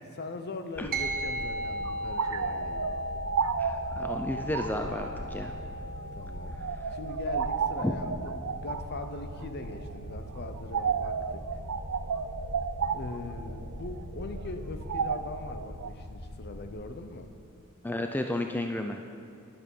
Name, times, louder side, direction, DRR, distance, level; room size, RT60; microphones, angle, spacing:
voice 1, 0.2-2.8 6.1-6.6 6.9-11.5 12.9-17.3, left 3 dB, 50° left, 8 dB, 0.7 m, -41 dB
sound 1, 0.7-16.7, left 1 dB, 70° left, 1.0 m, -42 dB
sound 2, 0.9-10.6, equal, 45° right, 1.1 m, -38 dB
sound 3, 1.6-15.9, right 6 dB, 70° right, 0.5 m, -34 dB
voice 2, 3.6-5.5 7.8-7.9 17.8-19.0, left 1 dB, 10° left, 4 dB, 0.4 m, -32 dB
11.5 x 10.5 x 5.5 m, 2.5 s
head